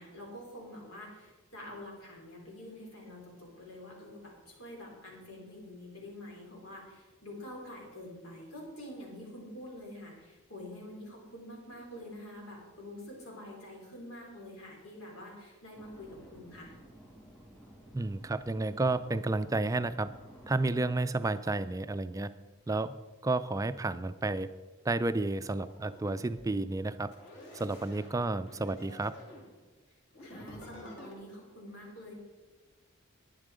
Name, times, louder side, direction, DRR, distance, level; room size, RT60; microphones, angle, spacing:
voice 1, 0.0-16.7 30.2-32.1, left 1 dB, 90° left, -2 dB, 4.0 m, -47 dB
sound 1, 15.7-20.9, right 1 dB, 15° left, 2.4 m, -54 dB
voice 2, 17.9-20.1 20.5-22.3 22.7-23.0 23.2-24.5 24.8-27.1 27.5-29.1, right 2 dB, 15° right, 12 dB, 0.3 m, -31 dB
sound 2, 25.6-26.5 27.1-29.5 30.1-31.2, equal, 55° left, 2.9 m, -50 dB
11.0 x 9.9 x 5.0 m, 1.3 s
head